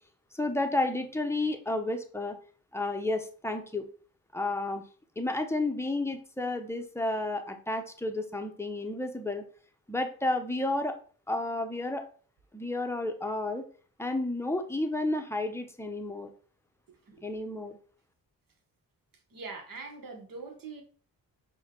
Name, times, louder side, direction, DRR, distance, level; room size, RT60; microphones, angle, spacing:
voice 1, 0.3-2.4 2.7-3.9 4.3-4.8 5.2-9.4 9.9-10.9 11.3-12.0 12.5-13.6 14.0-16.3 17.2-17.8, left 2 dB, 5° left, 5 dB, 0.8 m, -31 dB
voice 2, 16.9-17.2 19.3-20.8, right 4 dB, 55° right, 3 dB, 1.3 m, -43 dB
5.1 x 2.3 x 3.7 m, 0.41 s
supercardioid pair, 50°, 41 cm